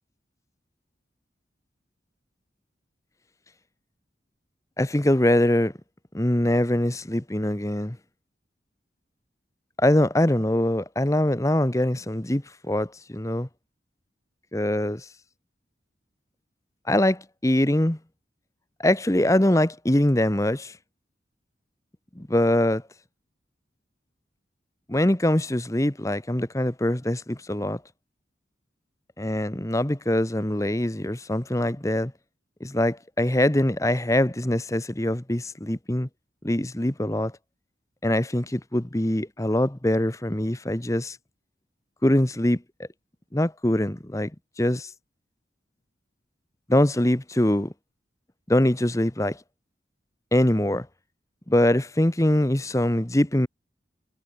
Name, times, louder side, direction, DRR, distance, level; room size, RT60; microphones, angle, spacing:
voice 1, 4.8-5.7 6.1-8.0 9.8-13.5 14.5-15.1 16.9-18.0 18.8-20.8 22.2-22.8 24.9-27.8 29.2-32.1 32.6-36.1 36.4-37.3 38.0-41.2 42.0-42.6 43.3-44.3 44.6-44.9 46.7-47.7 48.5-49.4 50.3-50.9 51.5-53.5, left 1 dB, 15° left, 1.0 m, -23 dB
head